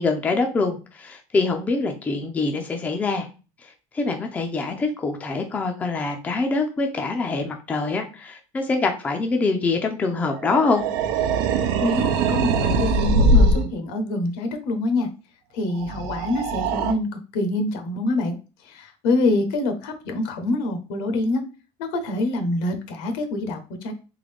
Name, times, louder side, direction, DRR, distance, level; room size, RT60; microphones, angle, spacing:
voice 1, 0.0-3.3 3.6-10.8, left 3 dB, 15° left, 4 dB, 0.5 m, -24 dB
sound 1, 10.4-13.7 15.8-16.9, right 2 dB, 90° right, 0.7 m, -21 dB
voice 2, 11.8-15.1 15.5-17.1 17.3-18.3 18.7-21.4 21.8-23.9, left 2 dB, 70° left, 7 dB, 1.0 m, -25 dB
3.8 x 3.6 x 3.4 m, 0.33 s
cardioid pair, 175°, 11 cm